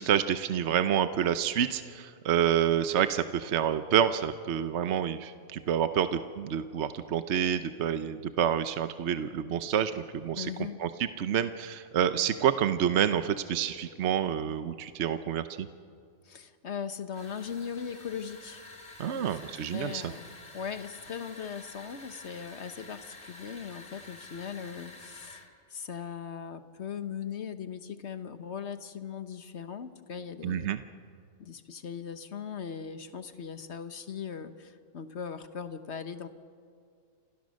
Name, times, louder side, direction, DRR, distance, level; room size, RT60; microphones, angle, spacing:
voice 1, 0.0-10.5 10.8-15.7 19.0-20.1 30.4-30.8, right 9 dB, 60° right, 10 dB, 1.1 m, -28 dB
voice 2, 10.4-10.8 16.2-18.6 19.1-19.3 19.7-25.4 25.7-30.8 31.4-36.3, left 7 dB, 55° left, 10 dB, 1.4 m, -39 dB
sound 1, 17.1-25.5, left 2 dB, 40° left, 2.9 m, -49 dB
30.0 x 26.5 x 6.4 m, 2.2 s
omnidirectional pair, 1.4 m